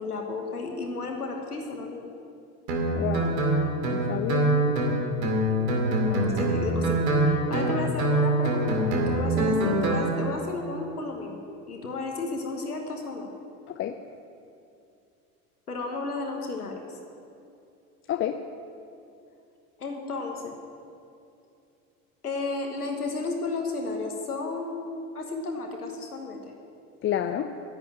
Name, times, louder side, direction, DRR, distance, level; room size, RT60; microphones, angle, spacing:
voice 1, 0.0-2.1 6.0-7.0 7.3-13.3 15.7-17.0 19.8-20.5 22.2-26.4, left 3 dB, 85° left, 2 dB, 1.2 m, -33 dB
Guitar, 2.7-10.1, right 1 dB, 70° right, 2.5 m, -24 dB
voice 2, 2.9-3.4 3.9-4.6 13.7-13.9 18.1-18.4 27.0-27.5, left 10 dB, 30° left, 6 dB, 0.6 m, -29 dB
11.0 x 8.2 x 8.7 m, 2.6 s
figure-of-eight pair, 70°, 44 cm